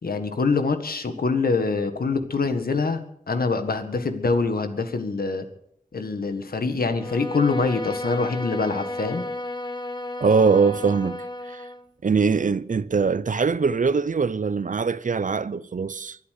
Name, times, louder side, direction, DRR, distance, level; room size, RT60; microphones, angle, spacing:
voice 1, 0.0-3.0 3.3-5.4 5.9-9.2, left 4 dB, 90° left, 1.7 m, -24 dB
Bowed string instrument, 6.9-11.9, left 1 dB, 30° left, 1.3 m, -33 dB
voice 2, 10.2-11.6 12.0-16.2, right 5 dB, 60° right, 0.6 m, -22 dB
23.0 x 8.3 x 6.7 m
wide cardioid pair, 55°, 15 cm